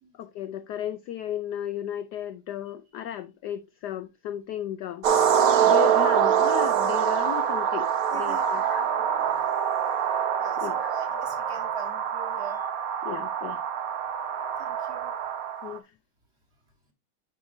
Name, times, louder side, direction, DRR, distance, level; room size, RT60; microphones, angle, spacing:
voice 1, 0.1-5.1 5.6-8.9 10.6-10.9 13.0-13.6 15.6-15.8, left 10 dB, 80° left, 0.9 m, -34 dB
sound 1, 5.0-15.8, right 8 dB, 60° right, 0.9 m, -25 dB
voice 2, 8.1-8.5 8.9-9.2 10.4-12.6 14.3-15.1, right 4 dB, 35° right, 1.7 m, -42 dB
9.7 x 4.8 x 2.6 m
omnidirectional pair, 2.3 m